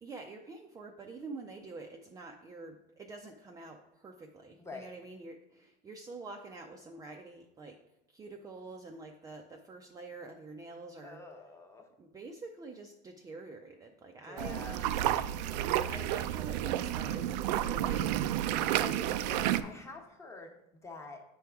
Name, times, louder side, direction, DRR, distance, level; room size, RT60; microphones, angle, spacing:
voice 1, 0.0-7.8 8.1-11.2 12.0-14.9 15.4-18.3, right 3 dB, 15° right, 2 dB, 0.4 m, -47 dB
voice 2, 4.6-4.9 11.0-11.9 14.3-14.8 17.8-17.9 18.6-21.2, left 3 dB, 15° left, 3 dB, 1.0 m, -47 dB
sound 1, 14.4-19.6, right 12 dB, 85° right, 0.4 m, -31 dB
8.4 x 4.6 x 3.5 m, 0.90 s
supercardioid pair, 135°, 21 cm